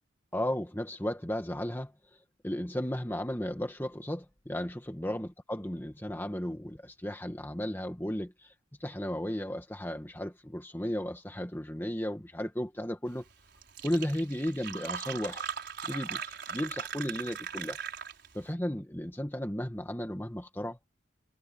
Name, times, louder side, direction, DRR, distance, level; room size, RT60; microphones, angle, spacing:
voice 1, 0.3-1.9 2.4-8.5 8.8-13.2 13.8-15.4 15.8-17.8 18.3-20.8, equal, 10° left, 1.6 m, -34 dB
Fill (with liquid), 13.3-13.4 13.6-18.4, right 7 dB, 55° right, 6.0 m, -39 dB
head